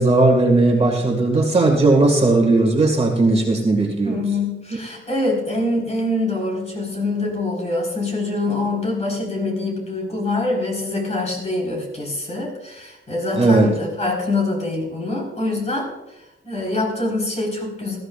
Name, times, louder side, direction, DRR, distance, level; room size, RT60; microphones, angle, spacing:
voice 1, 0.0-4.2 13.4-13.8, right 2 dB, 30° right, 1 dB, 1.9 m, -17 dB
voice 2, 4.0-15.9 16.4-18.0, left 2 dB, 35° left, 0 dB, 4.3 m, -24 dB
19.0 x 14.0 x 2.4 m, 0.91 s
wide cardioid pair, 140°, 21 cm